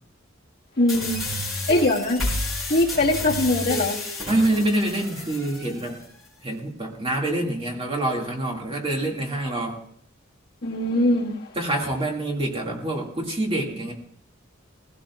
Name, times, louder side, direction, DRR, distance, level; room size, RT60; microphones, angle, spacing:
voice 1, 0.8-1.2 1.7-2.2 2.7-4.0 10.6-11.5, left 1 dB, 50° left, -3 dB, 1.9 m, -21 dB
sound 1, 0.9-5.9, left 1 dB, ahead, 6.5 m, -30 dB
voice 2, 4.3-6.0 6.4-9.8 11.6-13.9, right 1 dB, 30° right, -1 dB, 2.3 m, -26 dB
19.0 x 16.5 x 2.5 m, 0.63 s
head